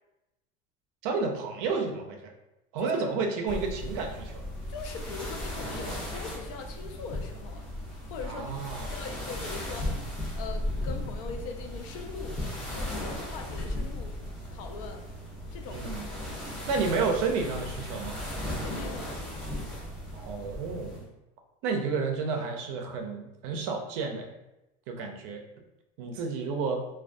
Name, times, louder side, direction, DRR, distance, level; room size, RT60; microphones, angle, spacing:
voice 1, 1.0-2.2 2.7-4.5 8.2-8.9 15.7-16.1 16.7-18.2 20.1-21.0 21.6-24.3 24.9-25.4 26.0-26.8, right 4 dB, 65° right, 3 dB, 0.5 m, -31 dB
sound 1, 3.5-21.0, left 1 dB, 5° left, 0.6 m, -36 dB
voice 2, 4.7-7.7 8.1-9.9 10.4-12.4 12.7-14.2 14.5-15.1 15.5-15.9 18.6-19.2, left 5 dB, 80° left, 5 dB, 0.4 m, -41 dB
2.2 x 2.2 x 2.5 m, 0.94 s
cardioid pair, 175°, 17 cm